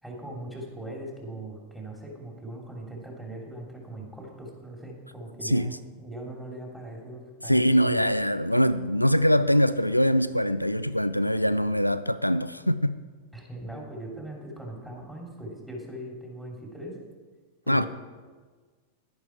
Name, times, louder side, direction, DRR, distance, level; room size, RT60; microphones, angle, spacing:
voice 1, 0.0-8.0 13.3-16.9 17.6-17.9, right 1 dB, 5° right, 3.1 m, -40 dB
voice 2, 7.4-13.0 17.7-17.9, equal, 90° left, 0.3 m, -23 dB
11.0 x 10.5 x 4.7 m
figure-of-eight pair, 90°, 0 cm